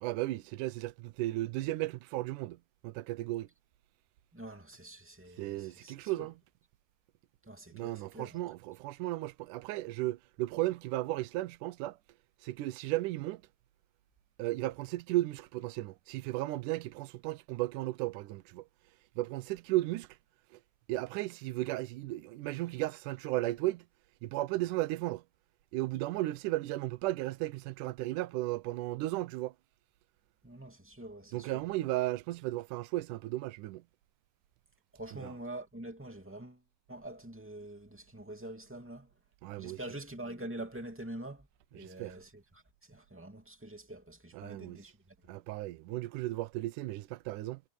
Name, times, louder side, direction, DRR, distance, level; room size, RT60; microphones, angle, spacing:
voice 1, 0.0-2.6 2.8-3.5 5.4-6.3 7.7-12.0 12.4-13.4 14.4-18.7 19.2-20.1 20.9-23.9 24.2-25.2 25.7-29.5 31.3-33.8 35.1-35.3 39.4-39.8 41.8-42.2 44.3-44.8 45.3-47.6, right 17 dB, 75° right, 1.9 m, -35 dB
voice 2, 4.3-6.3 7.4-8.4 30.4-31.5 34.9-36.6 36.9-39.1 39.6-41.5 41.7-45.0, right 1 dB, 5° right, 1.5 m, -45 dB
omnidirectional pair, 4.6 m